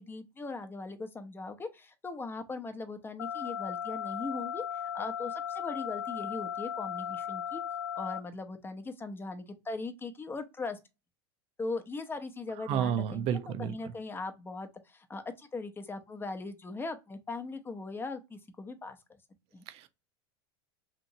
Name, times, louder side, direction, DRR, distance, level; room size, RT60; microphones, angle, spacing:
voice 1, 0.0-7.6 8.0-10.8 11.6-19.0 19.5-19.6, left 3 dB, 15° left, 0.6 m, -39 dB
sound 1, 3.2-8.2, left 9 dB, 90° left, 0.5 m, -36 dB
voice 2, 12.7-13.9 19.7-19.9, right 9 dB, 45° right, 0.5 m, -31 dB
2.9 x 2.7 x 2.6 m
hypercardioid pair, 105°, 14 cm